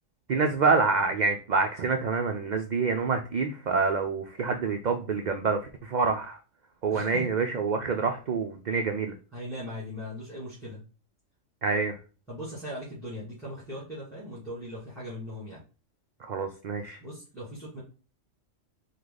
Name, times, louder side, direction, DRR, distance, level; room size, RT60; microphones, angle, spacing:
voice 1, 0.3-6.4 6.8-9.1 11.6-12.0 16.2-17.0, right 4 dB, 80° right, 5 dB, 0.4 m, -27 dB
voice 2, 6.9-7.3 9.3-10.8 12.3-15.6 17.0-17.8, equal, ahead, -10 dB, 2.1 m, -39 dB
4.8 x 2.4 x 3.8 m, 0.34 s
omnidirectional pair, 1.3 m